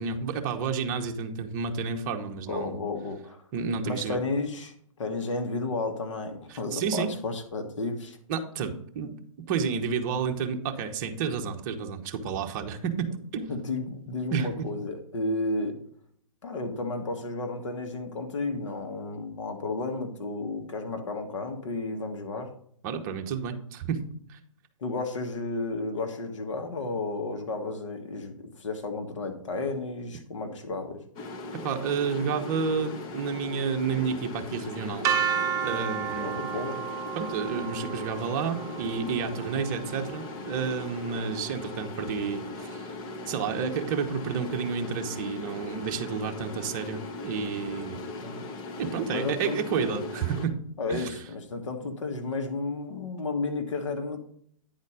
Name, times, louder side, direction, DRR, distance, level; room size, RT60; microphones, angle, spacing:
voice 1, 0.0-2.8 3.5-4.2 6.5-7.1 8.3-9.1 9.5-13.5 14.3-14.7 22.8-24.0 24.3-24.4 31.6-35.1 35.6-36.6 37.2-42.9 43.3-48.0 48.8-50.6 50.9-51.2, right 6 dB, 35° right, 4 dB, 1.0 m, -30 dB
voice 2, 2.5-3.4 3.8-8.2 13.5-15.8 16.4-22.5 24.8-31.0 36.2-36.9 48.2-48.5 49.1-50.0 50.8-54.2, left 3 dB, 65° left, 5 dB, 1.4 m, -32 dB
sound 1, 31.2-50.5, left 2 dB, 25° left, 0.8 m, -39 dB
sound 2, 35.0-41.0, right 8 dB, 20° right, 0.5 m, -32 dB
9.6 x 4.2 x 5.0 m, 0.64 s
hypercardioid pair, 135°, 17 cm